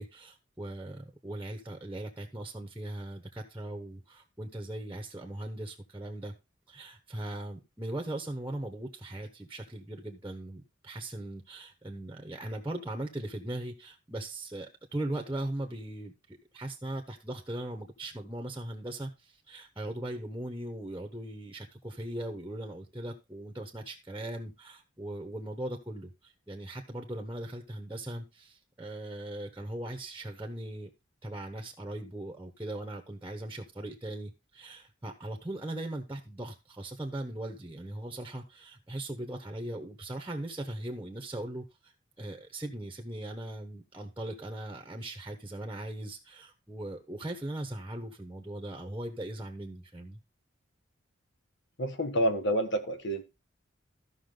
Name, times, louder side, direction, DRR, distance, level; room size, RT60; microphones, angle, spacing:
voice 1, 0.0-6.3 6.7-30.9 31.2-50.2, right 1 dB, 10° right, 1.2 m, -39 dB
voice 2, 51.8-53.3, equal, 65° left, 1.6 m, -28 dB
14.0 x 6.0 x 3.8 m
head